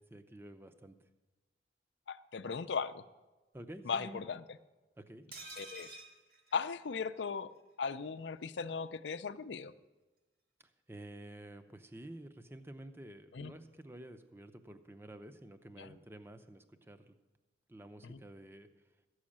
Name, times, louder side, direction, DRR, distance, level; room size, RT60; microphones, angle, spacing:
voice 1, 0.1-1.0 3.5-4.2 5.0-5.2 10.9-17.1 17.7-18.7, right 1 dB, 15° right, 8 dB, 0.6 m, -50 dB
voice 2, 2.1-3.0 3.8-4.6 5.6-6.0 6.5-7.5 7.8-9.7 13.3-13.5 15.8-16.0 18.0-18.2, left 5 dB, 85° left, 13 dB, 0.5 m, -38 dB
sound 1, 5.3-7.3 7.6-7.7 7.9-8.1, right 2 dB, 55° right, 2.0 m, -50 dB
14.0 x 6.4 x 8.6 m, 1.2 s
head